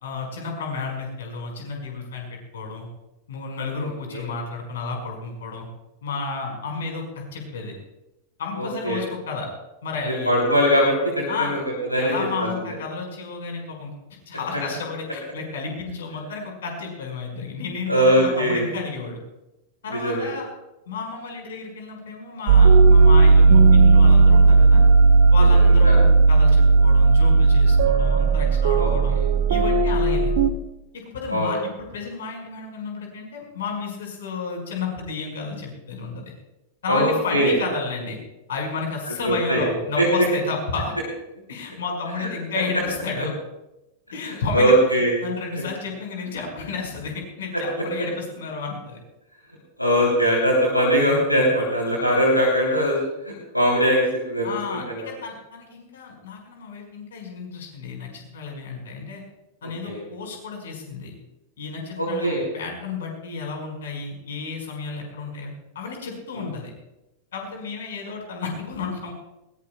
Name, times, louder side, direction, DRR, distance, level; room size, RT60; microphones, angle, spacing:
voice 1, 0.0-2.9 3.3-5.7 6.0-7.7 8.4-9.5 9.8-10.5 11.3-11.5 11.9-13.9 14.3-19.2 19.8-20.4 20.9-24.8 25.3-29.2 29.5-30.3 30.9-36.3 36.8-38.2 38.5-40.9 41.5-43.3 44.1-49.0 54.4-59.2 59.6-61.1 61.6-65.5 65.7-66.7 67.3-69.1, left 4 dB, 60° left, 2 dB, 4.8 m, -32 dB
voice 2, 3.8-4.2 8.6-9.0 10.2-11.6 11.9-12.1 12.4-12.8 17.9-18.6 19.9-20.3 25.5-25.9 28.7-28.9 31.3-31.5 36.9-37.5 39.2-39.6 40.0-40.2 44.2-45.2 45.5-45.6 47.5-47.6 49.8-53.0 53.2-55.1 59.8-60.0 62.0-62.4 66.3-66.5, equal, 90° left, -3 dB, 3.1 m, -21 dB
sound 1, 22.5-30.5, right 4 dB, 55° right, 1.1 m, -14 dB
21.0 x 20.0 x 2.3 m, 0.93 s
figure-of-eight pair, 90°, 0 cm